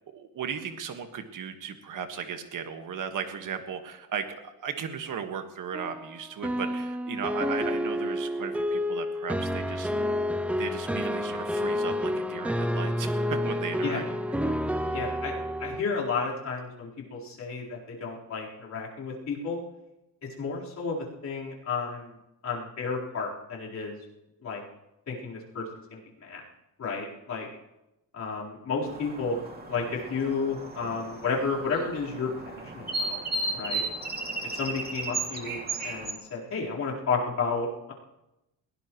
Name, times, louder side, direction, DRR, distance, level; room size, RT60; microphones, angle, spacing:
voice 1, 0.1-9.9 10.6-14.0 14.4-14.5 32.6-32.7, right 7 dB, 50° right, 6 dB, 1.7 m, -36 dB
sound 1, 5.7-15.8, left 1 dB, 5° right, 0.4 m, -29 dB
voice 2, 14.9-19.6 20.4-22.1 22.4-24.0 24.4-24.6 25.1-25.6 25.9-26.4 26.8-27.5 28.1-29.4 29.6-33.2 33.5-33.8 34.4-37.9, left 4 dB, 45° left, -5 dB, 4.2 m, -32 dB
sound 2, 28.8-36.1, right 2 dB, 25° right, 2.4 m, -35 dB
22.0 x 17.5 x 3.1 m, 0.93 s
cardioid pair, 150°, 39 cm